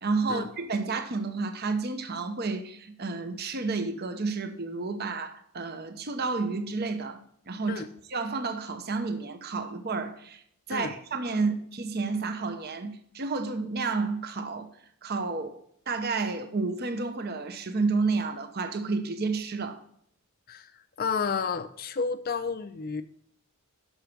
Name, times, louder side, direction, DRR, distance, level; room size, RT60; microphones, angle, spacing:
voice 1, 0.0-7.8 8.1-10.4 10.7-14.7 15.0-15.6 15.9-19.8, right 4 dB, 45° right, 0.9 m, -31 dB
voice 2, 21.0-23.0, left 5 dB, 45° left, 0.5 m, -31 dB
8.1 x 6.3 x 6.0 m
head